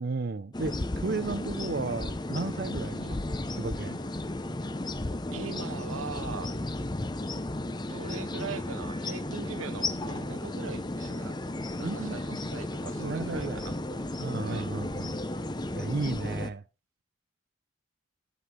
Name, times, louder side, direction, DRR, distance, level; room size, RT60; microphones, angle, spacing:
voice 1, 0.0-3.2 3.5-4.0 11.8-12.4 13.0-13.7 14.2-15.2 15.7-16.6, right 3 dB, 50° right, 0.5 m, -34 dB
sound 1, 0.5-16.5, left 2 dB, 20° left, 0.7 m, -34 dB
voice 2, 5.3-6.6 7.9-11.4 11.7-14.1 14.4-14.7, right 5 dB, 90° right, 0.7 m, -41 dB
11.5 x 9.6 x 3.7 m
head